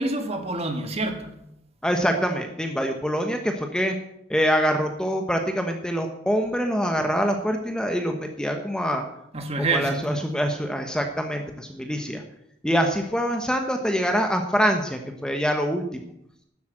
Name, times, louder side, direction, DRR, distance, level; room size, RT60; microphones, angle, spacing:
voice 1, 0.0-1.4 9.3-10.0, right 2 dB, 35° right, 5 dB, 1.8 m, -27 dB
voice 2, 1.8-4.0 4.3-9.0 9.6-12.2 12.6-16.1, equal, 5° left, 4 dB, 1.1 m, -25 dB
12.5 x 8.3 x 7.5 m, 0.77 s
head